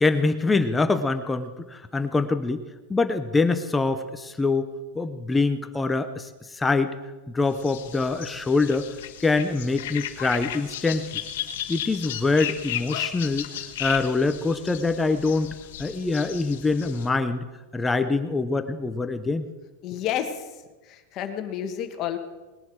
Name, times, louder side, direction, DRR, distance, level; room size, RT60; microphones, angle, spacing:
voice 1, 0.0-2.6 2.9-7.0 7.3-8.9 9.2-11.1 11.7-13.5 13.8-17.4 17.7-19.5, left 3 dB, 10° left, 9 dB, 0.6 m, -24 dB
sound 1, 7.6-17.1, left 11 dB, 70° left, 1.3 m, -35 dB
voice 2, 19.8-22.2, left 10 dB, 30° left, 7 dB, 1.4 m, -31 dB
19.5 x 11.0 x 4.6 m, 1.2 s
supercardioid pair, 165°, 0 cm